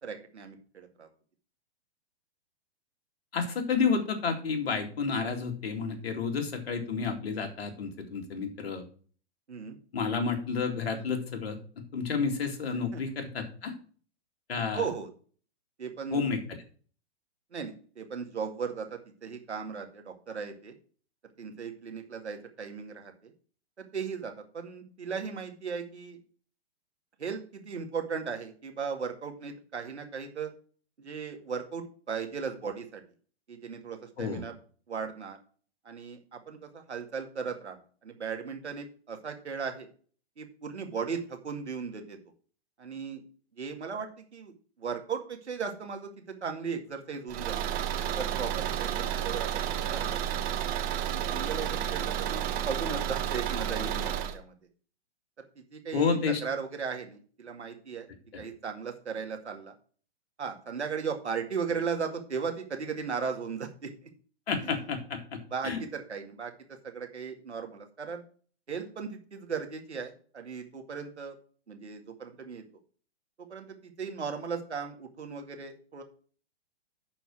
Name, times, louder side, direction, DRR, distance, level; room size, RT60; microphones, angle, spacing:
voice 1, 0.0-1.1 9.5-9.8 12.9-13.0 14.7-15.1 15.8-16.3 17.5-20.7 21.4-23.3 23.8-26.2 27.2-30.5 31.0-33.0 33.5-34.6 34.9-35.4 35.8-39.9 40.4-42.2 42.8-43.2 43.6-44.5 44.8-47.7 48.1-50.2 51.1-54.5 55.6-58.1 58.4-59.7 60.4-64.1 64.6-64.7 65.5-66.5 66.8-68.2 68.7-71.3 71.7-72.6 73.4-76.0, right 6 dB, 80° right, 4 dB, 2.2 m, -37 dB
voice 2, 3.3-8.8 9.9-11.6 11.9-13.7 14.5-14.8 16.1-16.4 34.2-34.4 55.9-56.4 58.3-58.4 64.5-65.8, left 5 dB, 65° left, 4 dB, 2.5 m, -30 dB
Car / Engine, 47.3-54.4, right 10 dB, 25° right, 1.1 m, -31 dB
10.5 x 4.6 x 6.1 m, 0.42 s
figure-of-eight pair, 120°, 33 cm